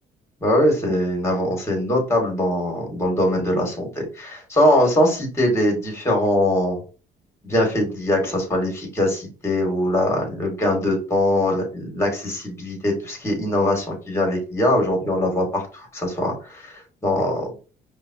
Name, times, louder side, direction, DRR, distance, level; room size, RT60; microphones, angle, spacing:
voice 1, 0.4-6.8 7.4-17.5, left 1 dB, 15° left, 1 dB, 1.9 m, -22 dB
5.0 x 2.3 x 2.8 m, 0.35 s
cardioid pair, 110°, 17 cm